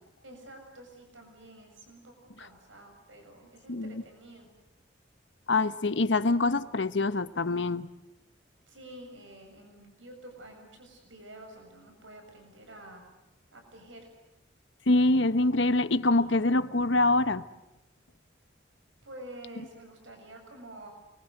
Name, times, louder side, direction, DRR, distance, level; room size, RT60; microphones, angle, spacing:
voice 1, 0.2-4.5 8.7-13.1 13.5-14.1 19.0-20.9, right 1 dB, 90° right, 4 dB, 7.3 m, -49 dB
voice 2, 5.5-7.9 14.9-17.4, left 2 dB, 70° left, 13 dB, 1.1 m, -25 dB
30.0 x 23.5 x 7.9 m, 0.95 s
head